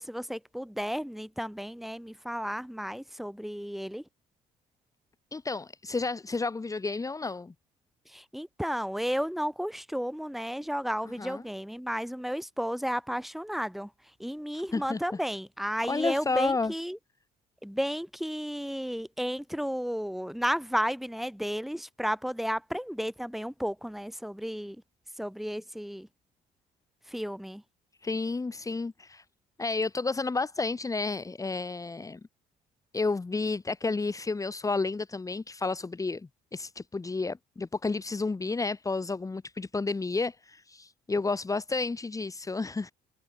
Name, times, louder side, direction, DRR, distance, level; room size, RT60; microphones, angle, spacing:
voice 1, 0.0-4.0 8.1-13.9 14.2-17.0 17.6-24.8 25.2-26.1 27.1-27.6, equal, ahead, 7.0 m, -33 dB
voice 2, 5.3-7.5 11.2-11.4 14.7-15.0 15.9-16.7 28.0-29.2 29.6-32.2 32.9-42.9, left 3 dB, 20° left, 4.1 m, -31 dB
cardioid pair, 110°, 17 cm